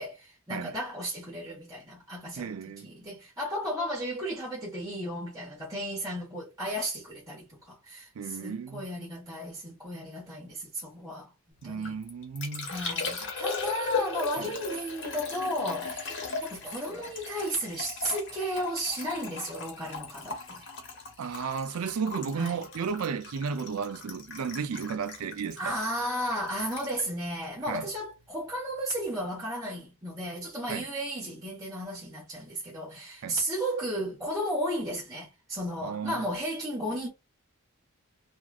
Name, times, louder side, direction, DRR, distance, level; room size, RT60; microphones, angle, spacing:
voice 1, 0.0-2.5 2.8-11.3 11.6-11.9 12.6-20.6 22.3-22.7 25.6-37.1, equal, 15° right, 1.3 m, -34 dB
voice 2, 2.4-2.9 8.2-8.9 11.6-12.7 14.4-14.5 21.2-25.7 27.7-27.9 30.7-30.9 33.2-33.4 35.8-36.3, right 6 dB, 85° right, 0.4 m, -34 dB
Liquid, 11.6-28.2 28.5-29.0, left 4 dB, 55° left, 1.1 m, -38 dB
2.9 x 2.5 x 2.4 m
head